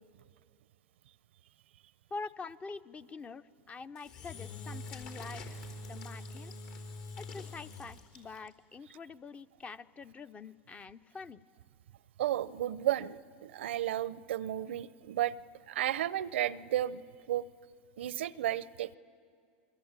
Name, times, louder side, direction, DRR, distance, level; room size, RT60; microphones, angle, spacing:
voice 1, 2.1-5.6 5.9-6.5 7.2-11.4, left 4 dB, 20° left, 14 dB, 0.7 m, -45 dB
Engine / Drill, 3.9-8.5, left 2 dB, 60° left, 4.4 m, -44 dB
voice 2, 12.2-15.4 15.7-17.4 18.0-19.0, right 12 dB, 80° right, 19 dB, 0.7 m, -33 dB
28.5 x 22.5 x 8.9 m, 2.2 s
hypercardioid pair, 110°, 6 cm